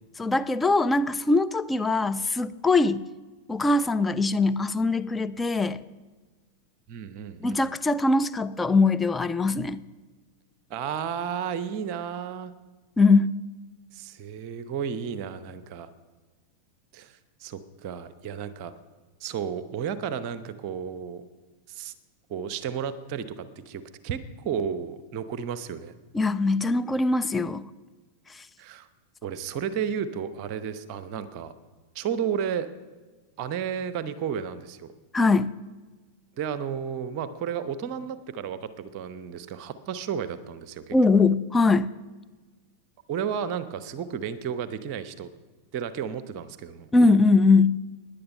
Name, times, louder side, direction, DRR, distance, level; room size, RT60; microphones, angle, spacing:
voice 1, 0.2-3.1 3.5-5.8 7.4-9.8 13.0-13.3 26.1-27.7 28.3-28.5 35.1-35.5 40.9-41.9 46.9-47.8, left 3 dB, 10° left, 11 dB, 0.5 m, -22 dB
voice 2, 6.9-7.6 10.7-12.5 13.9-15.9 16.9-18.7 19.2-21.2 21.7-21.9 22.3-25.9 28.6-28.9 29.2-31.5 31.9-32.7 33.4-34.9 36.4-41.0 43.1-45.3 45.7-46.9, right 7 dB, 45° right, 13 dB, 0.8 m, -32 dB
15.5 x 10.5 x 5.5 m, 1.3 s
figure-of-eight pair, 90°, 0 cm